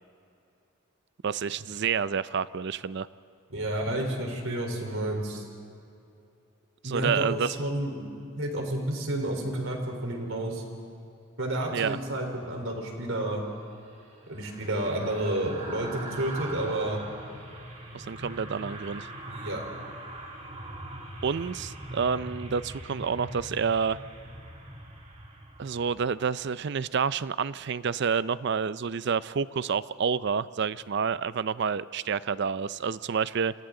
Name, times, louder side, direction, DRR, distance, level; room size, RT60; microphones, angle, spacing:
voice 1, 1.2-3.1 6.8-7.6 11.7-12.0 17.9-19.1 21.2-24.0 25.6-33.5, right 6 dB, 55° right, 16 dB, 0.5 m, -29 dB
voice 2, 3.5-5.5 6.8-8.0 8.4-10.6 11.4-13.4 14.3-17.0 19.3-19.6, right 1 dB, 75° right, 2 dB, 3.9 m, -30 dB
sound 1, 13.2-26.5 26.9-27.1, right 1 dB, 30° right, 2.7 m, -42 dB
30.0 x 26.5 x 3.8 m, 2.6 s
head